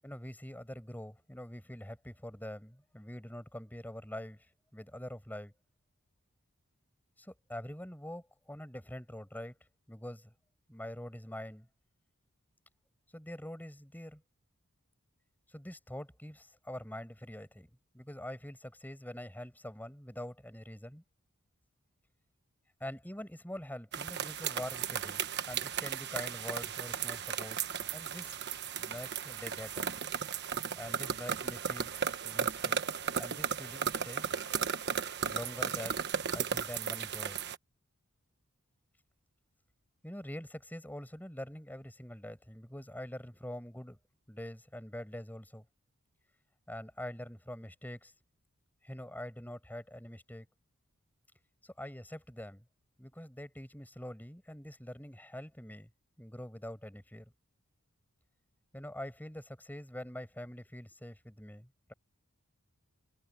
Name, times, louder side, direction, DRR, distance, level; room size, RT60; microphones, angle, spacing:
voice 1, 0.0-5.5 7.2-9.5 9.9-10.3 10.7-11.7 13.1-14.2 15.5-17.7 17.9-21.0 22.8-25.2 25.5-27.6 27.9-28.4 28.8-29.9 30.8-31.9 32.2-32.8 33.2-34.3 35.2-36.0 36.3-37.4 40.0-44.0 44.3-45.6 46.7-48.1 48.8-50.5 51.6-52.6 53.0-55.9 56.2-57.3 58.7-61.9, left 1 dB, 10° left, 7.7 m, -45 dB
sound 1, 23.9-37.6, right 7 dB, 50° right, 1.2 m, -35 dB
head